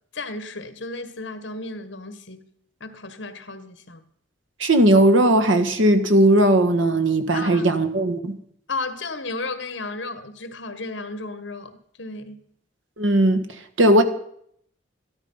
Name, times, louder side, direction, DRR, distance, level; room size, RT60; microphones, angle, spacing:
voice 1, 0.1-2.5 2.8-4.0 7.3-7.7 8.7-12.4, left 3 dB, 70° left, 1.5 m, -34 dB
voice 2, 4.6-8.3 13.0-13.4 13.8-14.0, right 1 dB, 85° right, 1.5 m, -17 dB
14.0 x 12.5 x 5.6 m
head